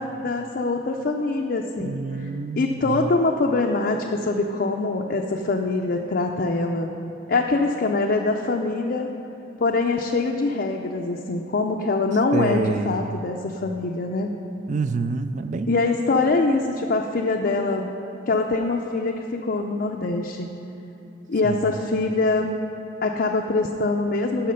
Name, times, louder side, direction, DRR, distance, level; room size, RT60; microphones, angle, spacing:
voice 1, 0.0-2.0 2.6-6.9 7.3-9.1 9.6-14.3 15.7-17.9 18.3-20.5 21.3-22.6 23.0-24.5, left 3 dB, 55° left, 1 dB, 0.5 m, -24 dB
voice 2, 1.8-3.1 12.3-13.2 14.7-15.7 21.4-21.6, right 3 dB, 40° right, 11 dB, 0.3 m, -27 dB
11.5 x 5.9 x 5.6 m, 2.8 s
head